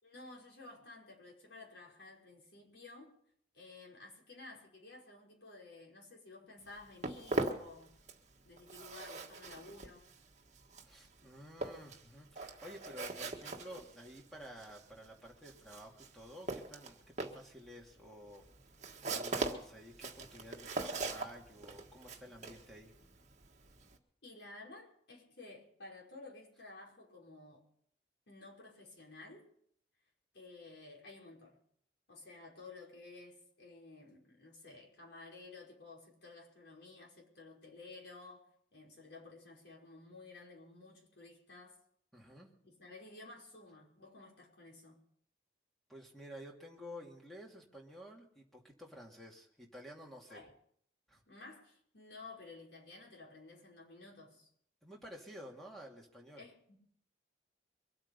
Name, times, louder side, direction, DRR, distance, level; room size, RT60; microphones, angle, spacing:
voice 1, 0.0-3.2 3.5-8.0 8.4-10.0 24.2-27.7 28.3-29.5 30.3-31.6 32.1-41.8 42.6-45.0 50.3-50.5 51.3-54.5 56.4-56.7, left 3 dB, 80° left, -3 dB, 5.3 m, -53 dB
Walk footsteps, 6.6-8.3 8.6-24.0, right 2 dB, 40° right, 1.6 m, -41 dB
voice 2, 10.8-18.5 19.0-22.9 42.1-42.5 45.9-50.4 51.1-51.2 54.8-56.4, equal, ahead, -1 dB, 2.5 m, -52 dB
24.0 x 8.8 x 5.5 m, 0.66 s
head